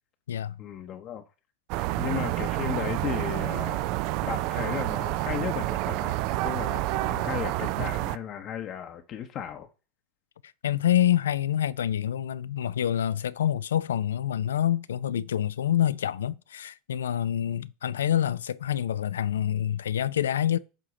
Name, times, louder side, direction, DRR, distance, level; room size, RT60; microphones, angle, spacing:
voice 1, 0.6-1.2 2.0-3.9 4.3-9.7, left 9 dB, 45° left, 0.7 m, -35 dB
sound 1, 1.7-8.2, right 17 dB, 60° right, 0.4 m, -29 dB
voice 2, 10.6-20.6, left 10 dB, 85° left, 0.3 m, -27 dB
7.6 x 2.9 x 4.9 m
hypercardioid pair, 90°, 0 cm